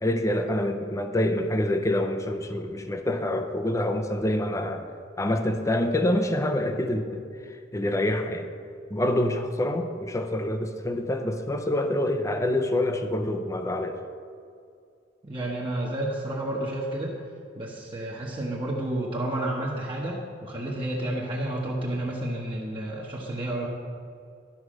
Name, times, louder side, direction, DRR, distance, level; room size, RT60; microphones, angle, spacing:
voice 1, 0.0-4.9 5.2-8.5 8.9-14.0, left 1 dB, 15° left, 6 dB, 0.5 m, -26 dB
voice 2, 15.2-17.2 17.6-23.7, right 1 dB, 30° right, -4 dB, 1.0 m, -30 dB
12.0 x 4.7 x 6.3 m, 2.3 s
head